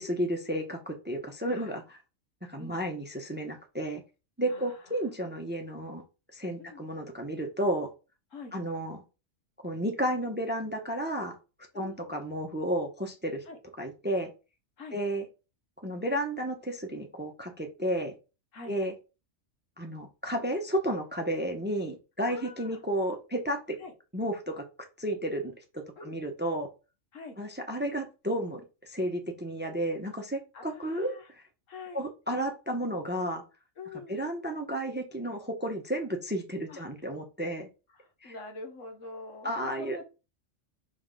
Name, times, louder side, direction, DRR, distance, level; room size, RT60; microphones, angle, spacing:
voice 1, 0.0-2.0 2.5-4.0 4.4-6.0 6.3-7.9 8.5-9.0 9.6-11.4 11.7-13.4 13.8-14.3 14.9-15.2 15.8-18.1 18.7-18.9 19.8-23.8 24.1-24.6 25.0-26.7 27.4-31.4 31.9-33.4 34.1-37.7 38.2-38.3 39.4-40.0, right 1 dB, 10° right, 4 dB, 0.7 m, -32 dB
voice 2, 1.5-1.8 2.6-2.8 4.5-5.0 6.6-6.8 8.3-8.6 11.7-12.2 13.4-13.6 14.8-15.0 18.5-18.8 22.3-22.8 23.8-23.9 26.0-26.2 27.1-27.4 30.5-31.3 31.7-32.1 33.8-34.2 36.7-36.9 37.9-40.0, left 3 dB, 75° left, 5 dB, 1.5 m, -45 dB
5.7 x 3.3 x 5.2 m, 0.31 s
omnidirectional pair, 1.3 m